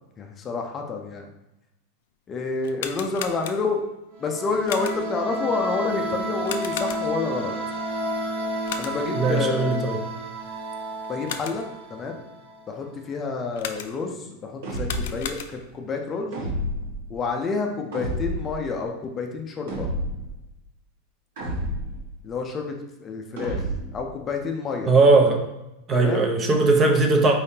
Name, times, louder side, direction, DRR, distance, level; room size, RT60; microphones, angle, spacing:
voice 1, 0.2-1.3 2.3-3.8 4.2-7.5 8.8-9.7 11.1-12.2 12.7-16.4 17.1-19.9 22.2-23.6 23.9-24.9 25.9-26.3, left 4 dB, 25° left, 3 dB, 0.5 m, -29 dB
sound 1, 2.6-3.9 4.7-5.2 6.4-7.3 8.6-9.2 11.0-11.8 13.6-14.2 14.7-15.8, left 8 dB, 75° left, 0.4 m, -36 dB
sound 2, 4.1-12.7, equal, 50° right, 1.2 m, -31 dB
voice 2, 9.1-10.0 24.9-25.4 25.9-27.4, right 3 dB, 25° right, 3 dB, 0.6 m, -19 dB
sound 3, 14.6-15.3 16.3-17.0 17.9-18.6 19.7-20.3 21.4-22.0 23.4-24.0, equal, 70° right, 1.4 m, -29 dB
4.6 x 3.5 x 2.8 m, 0.94 s
supercardioid pair, 140°, 0 cm